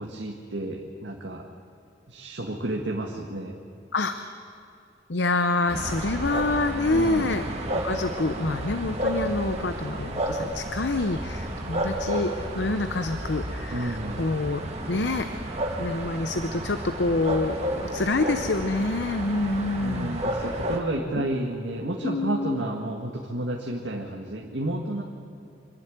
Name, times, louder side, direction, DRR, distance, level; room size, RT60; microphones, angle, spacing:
voice 1, 0.0-1.4 2.1-3.6 6.9-7.5 13.7-14.3 19.7-25.0, right 1 dB, 90° right, 0 dB, 1.8 m, -31 dB
voice 2, 5.1-7.4 7.7-14.6 14.9-15.3 15.8-20.2 21.2-21.3 22.0-22.6, left 2 dB, 70° left, 8 dB, 0.8 m, -27 dB
sound 1, 5.7-20.8, right 1 dB, 40° right, 2.5 m, -31 dB
26.0 x 11.0 x 9.3 m, 2.5 s
head